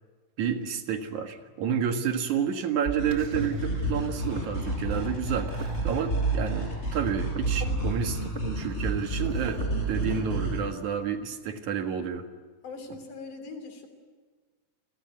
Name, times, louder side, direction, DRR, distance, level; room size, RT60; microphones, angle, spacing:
voice 1, 0.4-9.6 9.9-12.3, right 8 dB, 70° right, 6 dB, 3.1 m, -30 dB
sound 1, 2.9-4.0 4.2-4.5 4.8-5.0 5.5-6.5 6.8-10.9, right 4 dB, 50° right, 0.8 m, -37 dB
sound 2, 3.0-10.6, right 2 dB, 20° left, 6.7 m, -30 dB
voice 2, 12.6-13.9, left 4 dB, 85° left, 7 dB, 4.8 m, -40 dB
30.0 x 20.0 x 9.6 m, 1.4 s
omnidirectional pair, 3.5 m